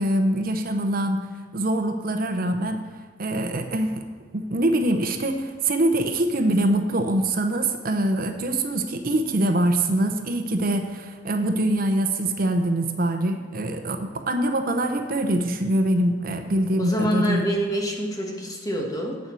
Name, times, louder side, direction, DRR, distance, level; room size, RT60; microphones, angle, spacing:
voice 1, 0.0-2.8 3.2-4.0 4.3-17.4, right 1 dB, 50° right, 6 dB, 0.8 m, -24 dB
voice 2, 16.8-19.2, equal, 20° left, 0 dB, 1.4 m, -26 dB
8.3 x 7.1 x 6.2 m, 1.5 s
head